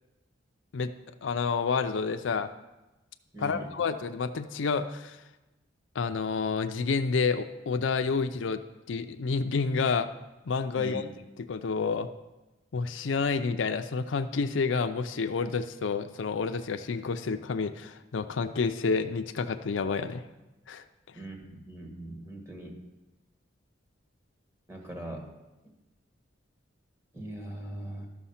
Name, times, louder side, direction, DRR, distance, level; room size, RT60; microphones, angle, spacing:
voice 1, 1.2-2.5 3.4-5.2 6.0-8.6 8.9-10.1 10.5-11.0 11.4-12.1 12.7-20.2 20.7-20.8, left 5 dB, 70° left, 9 dB, 0.5 m, -29 dB
voice 2, 3.3-3.7 10.8-11.0 21.1-22.8 24.7-25.3 27.1-28.1, right 1 dB, 15° right, 2 dB, 1.7 m, -40 dB
12.5 x 6.2 x 5.7 m, 1.1 s
head